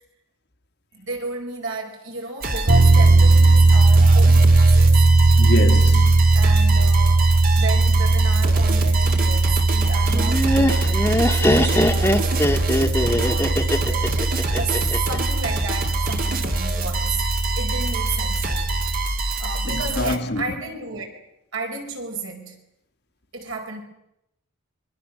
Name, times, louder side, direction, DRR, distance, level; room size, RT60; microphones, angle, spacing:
voice 1, 0.9-5.1 6.3-12.6 13.2-17.2 17.5-18.8 19.4-21.2 21.5-22.6 23.3-23.8, right 3 dB, 65° right, 5.2 m, -33 dB
sound 1, 2.4-20.2, right 2 dB, 40° right, 2.2 m, -26 dB
sound 2, 2.7-19.0, right 2 dB, 80° right, 2.0 m, -18 dB
voice 2, 5.4-6.3 19.6-20.4, left 1 dB, 50° left, 1.5 m, -26 dB
Laughter, 10.1-15.2, left 1 dB, 10° left, 1.6 m, -21 dB
26.5 x 22.5 x 6.6 m
head